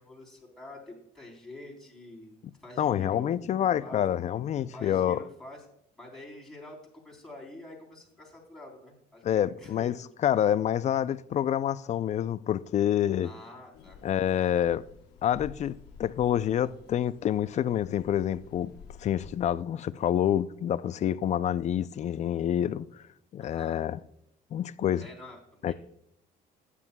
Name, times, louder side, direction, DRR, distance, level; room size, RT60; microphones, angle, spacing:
voice 1, 0.0-3.5 3.8-4.0 4.7-5.7 6.0-10.0 13.2-14.0 23.4-23.8 25.0-25.7, left 2 dB, 5° left, 3.6 m, -47 dB
voice 2, 2.8-5.2 9.2-10.0 10.2-13.3 14.0-14.8 15.2-18.7 19.0-23.0 23.3-24.0 24.5-25.0 25.6-25.7, left 10 dB, 45° left, 0.4 m, -27 dB
sound 1, 13.7-19.5, left 6 dB, 85° left, 0.9 m, -51 dB
14.5 x 9.7 x 2.2 m
cardioid pair, 110°, 17 cm